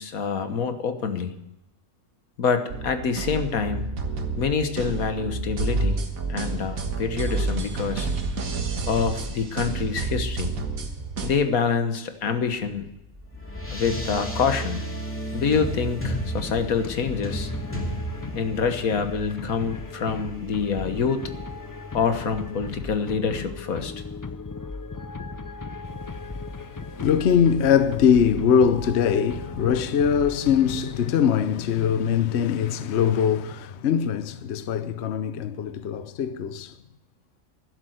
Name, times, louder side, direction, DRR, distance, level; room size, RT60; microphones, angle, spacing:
voice 1, 0.0-1.3 2.4-3.9 4.4-6.0 6.3-8.1 8.9-10.5 11.2-12.9 13.7-14.8 15.3-17.5 18.3-21.2 21.9-23.9 27.0-27.1, left 5 dB, 80° left, 1.7 m, -26 dB
sound 1, 2.7-11.3, right 3 dB, 75° right, 1.9 m, -29 dB
sound 2, 12.6-23.2, right 1 dB, 10° left, 2.5 m, -35 dB
sound 3, 16.4-31.4, left 3 dB, 35° left, 0.3 m, -37 dB
voice 2, 26.9-36.7, left 8 dB, 60° left, 0.9 m, -22 dB
12.0 x 11.5 x 8.0 m
omnidirectional pair, 1.5 m